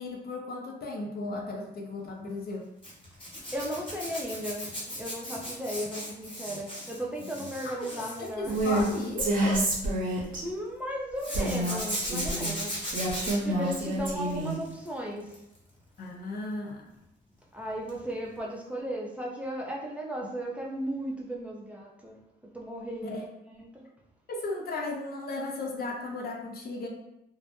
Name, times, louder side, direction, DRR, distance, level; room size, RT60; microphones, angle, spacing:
voice 1, 0.0-2.7 7.6-9.7 16.0-16.9 23.0-23.2 24.3-26.9, left 2 dB, 50° left, 1 dB, 0.5 m, -35 dB
Zipper (clothing), 2.8-10.3 11.2-14.9 15.2-15.6 17.9-18.0 18.3-18.4, equal, 25° left, 0.9 m, -38 dB
voice 2, 3.3-4.6 4.9-8.6 10.4-12.9 13.4-15.4 17.5-22.2 22.5-23.2 23.5-23.9, equal, 5° right, -3 dB, 0.4 m, -36 dB
Female speech woman speaking, 8.5-8.8 9.2-10.4 11.3-12.5 12.9-14.6, right 1 dB, 45° right, 0.7 m, -28 dB
2.1 x 2.0 x 2.8 m, 0.83 s
cardioid pair, 90°, 20 cm